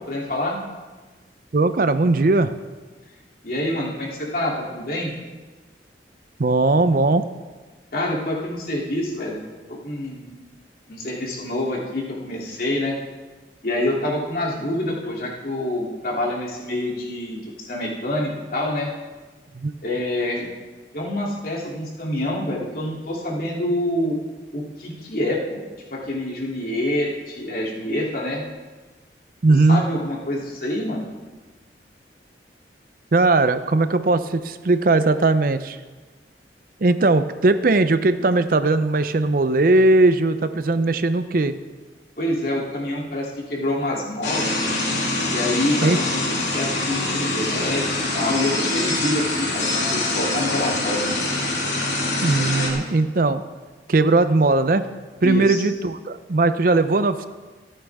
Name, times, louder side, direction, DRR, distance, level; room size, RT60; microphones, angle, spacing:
voice 1, 0.1-0.6 3.4-5.1 7.9-9.4 9.7-10.3 10.9-13.0 13.6-18.9 19.8-20.5 20.9-24.2 24.5-25.6 25.9-28.4 29.7-31.1 42.2-44.5 45.3-46.2 46.5-51.1 55.2-55.6, left 1 dB, 55° left, -3 dB, 2.9 m, -26 dB
voice 2, 1.5-2.5 6.4-7.3 19.5-19.7 29.4-29.8 33.1-35.8 36.8-41.5 45.8-46.0 52.2-53.4 53.9-54.8 55.2-57.3, right 2 dB, 50° right, 11 dB, 0.6 m, -19 dB
sound 1, 44.2-52.7, left 2 dB, 90° left, 3.3 m, -24 dB
25.0 x 8.8 x 3.6 m, 1.3 s
head